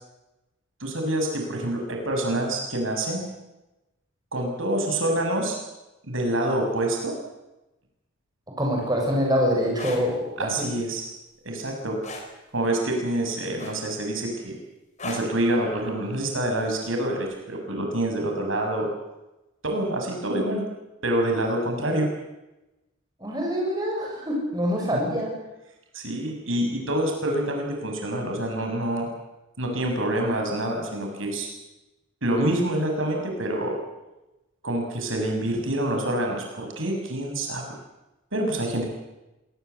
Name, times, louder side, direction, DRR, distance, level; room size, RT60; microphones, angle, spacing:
voice 1, 0.8-3.2 4.3-5.6 6.0-7.1 10.4-11.0 11.4-12.0 12.5-14.5 15.0-18.9 19.6-20.6 21.0-22.1 25.9-29.1 29.6-31.5 32.2-33.8 34.6-37.6 38.3-38.9, right 1 dB, 75° right, 2 dB, 6.7 m, -26 dB
voice 2, 8.6-10.7 23.2-25.3, equal, 20° right, -1 dB, 7.4 m, -25 dB
sound 1, 9.6-10.0 12.0-12.3 13.6-14.0 15.0-15.3 16.7-16.9, left 2 dB, 35° left, 4.7 m, -35 dB
26.0 x 19.5 x 8.2 m, 0.99 s
head